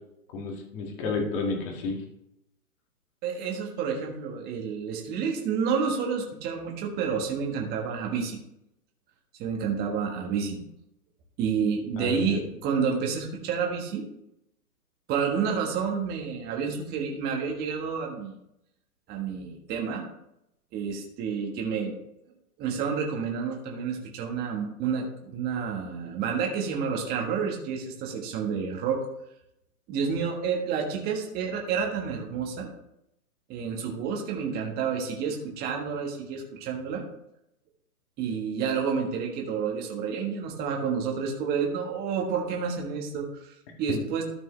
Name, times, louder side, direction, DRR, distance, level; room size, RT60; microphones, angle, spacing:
voice 1, 0.3-2.0 12.0-12.4 43.9-44.0, left 3 dB, 35° left, 1 dB, 2.1 m, -31 dB
voice 2, 3.2-8.4 9.4-10.6 11.4-14.1 15.1-18.4 19.1-20.0 20.7-21.9 22.6-29.0 29.9-32.7 33.5-37.0 38.2-44.2, right 6 dB, 20° right, 1 dB, 1.5 m, -29 dB
13.0 x 5.3 x 3.3 m, 0.80 s
hypercardioid pair, 135°, 46 cm